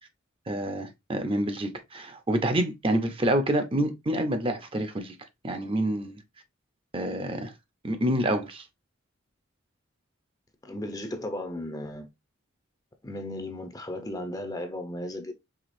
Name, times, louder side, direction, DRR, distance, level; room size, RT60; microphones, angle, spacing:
voice 1, 0.5-5.1 5.4-6.2 6.9-7.5 7.8-8.6, right 1 dB, 25° right, 0.7 m, -27 dB
voice 2, 10.6-12.1 13.0-15.4, left 1 dB, 20° left, 0.7 m, -35 dB
5.0 x 3.5 x 2.6 m
head